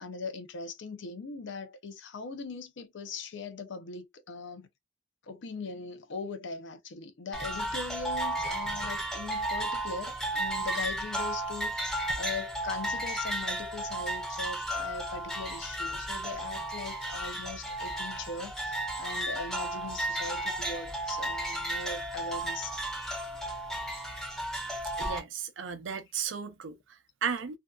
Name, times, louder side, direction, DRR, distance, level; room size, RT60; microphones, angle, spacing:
voice 1, 0.0-4.7 5.2-22.7, left 4 dB, 65° left, 0.5 m, -40 dB
sound 1, 7.3-25.2, right 1 dB, 5° left, 0.6 m, -34 dB
voice 2, 24.8-27.6, right 7 dB, 70° right, 0.5 m, -35 dB
2.6 x 2.3 x 2.3 m
head